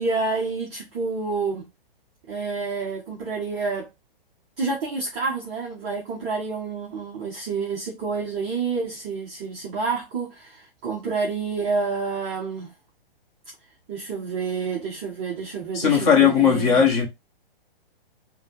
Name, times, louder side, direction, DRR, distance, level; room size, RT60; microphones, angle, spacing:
voice 1, 0.0-1.6 2.3-3.9 4.6-12.7 13.9-16.9, right 4 dB, 10° right, 0.3 m, -28 dB
voice 2, 15.7-17.1, left 7 dB, 40° left, 1.4 m, -18 dB
5.3 x 2.5 x 2.7 m
hypercardioid pair, 150°, 29 cm